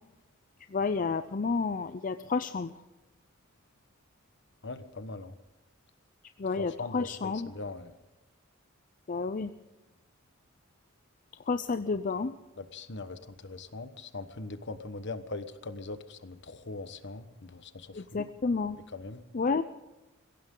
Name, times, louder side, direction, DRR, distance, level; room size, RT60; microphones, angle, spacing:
voice 1, 0.7-2.7 6.4-7.5 9.1-9.5 11.5-12.3 17.9-18.8 19.3-19.6, left 4 dB, 40° left, 11 dB, 0.5 m, -30 dB
voice 2, 4.6-5.3 6.6-7.9 12.6-18.2 18.9-19.2, left 3 dB, 60° left, 11 dB, 1.2 m, -41 dB
22.0 x 17.0 x 3.8 m, 1.1 s
head